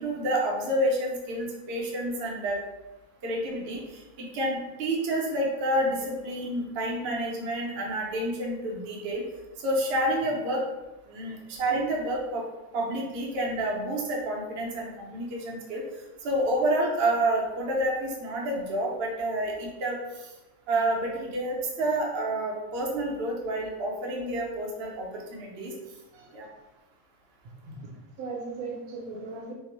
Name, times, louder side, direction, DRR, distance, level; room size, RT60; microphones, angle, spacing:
voice 1, 0.0-2.6 3.2-3.8 4.3-9.2 9.6-10.6 11.1-12.4 12.7-15.8 16.2-20.0 20.7-25.7 26.3-26.5, right 1 dB, 60° right, -3 dB, 0.7 m, -29 dB
voice 2, 28.2-29.5, right 3 dB, 75° right, -1 dB, 1.0 m, -37 dB
2.8 x 2.0 x 2.9 m, 1.0 s
omnidirectional pair, 1.6 m